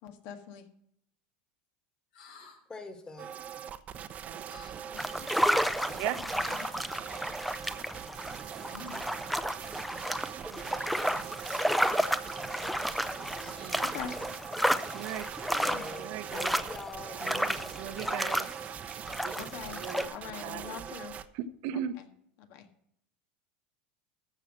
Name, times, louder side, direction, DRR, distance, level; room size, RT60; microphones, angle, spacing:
voice 1, 0.0-0.7 4.9-5.3 13.8-14.2 15.5-15.9 19.4-19.8 20.1-21.1 22.4-22.7, left 8 dB, 60° left, 7 dB, 1.8 m, -42 dB
sound 1, 2.1-2.6 4.5-4.8 6.4-6.7 8.7-9.2, left 2 dB, 80° left, 3.5 m, -48 dB
voice 2, 2.7-3.3 13.2-13.9 15.6-18.3 20.0-20.7, left 3 dB, 20° left, 6 dB, 2.1 m, -44 dB
sound 2, 3.2-21.3, right 9 dB, 35° right, 0.8 m, -42 dB
sound 3, 5.0-20.1, equal, ahead, 0.6 m, -32 dB
voice 3, 10.5-10.9 13.6-14.0 14.9-15.3 16.0-16.5 17.2-18.5 19.2-20.1 20.4-20.7 21.3-22.0, right 11 dB, 60° right, 10 dB, 0.9 m, -39 dB
14.0 x 5.6 x 6.2 m, 0.71 s
supercardioid pair, 130°, 4 cm